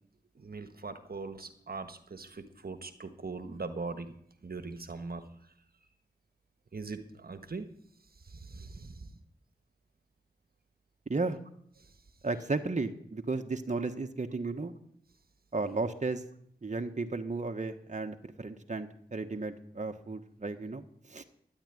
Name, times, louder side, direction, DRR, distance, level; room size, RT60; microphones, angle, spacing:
voice 1, 0.3-4.1 4.4-5.2 6.7-7.7 8.2-9.2 11.8-11.9, right 4 dB, 65° right, 9 dB, 1.4 m, -41 dB
voice 2, 12.2-14.7 15.5-16.2 16.6-21.2, right 3 dB, 45° right, 6 dB, 1.3 m, -34 dB
13.0 x 11.0 x 9.2 m, 0.68 s
cardioid pair, 45°, 17 cm